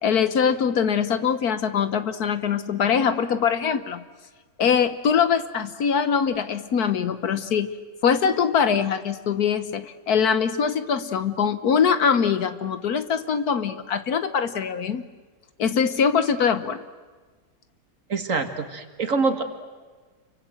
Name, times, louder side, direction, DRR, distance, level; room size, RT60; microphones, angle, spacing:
voice 1, 0.0-4.0 4.6-7.8 8.0-15.0 15.6-16.8, left 7 dB, 65° left, 12 dB, 1.4 m, -23 dB
voice 2, 18.1-19.4, right 4 dB, 50° right, 7 dB, 2.1 m, -25 dB
29.0 x 24.0 x 7.8 m, 1.4 s
omnidirectional pair, 1.9 m